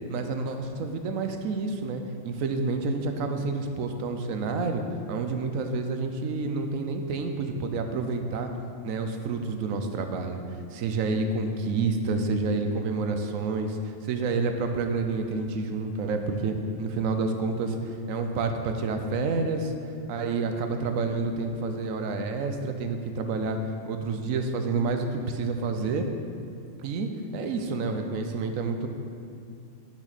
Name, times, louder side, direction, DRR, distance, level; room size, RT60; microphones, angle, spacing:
voice 1, 0.1-4.8 5.1-8.5 8.8-10.4 10.7-13.8 14.0-19.7 20.1-23.6 23.9-26.1 26.8-28.9, right 3 dB, 85° right, 6 dB, 1.1 m, -29 dB
8.9 x 6.1 x 4.1 m, 2.4 s
omnidirectional pair, 1.4 m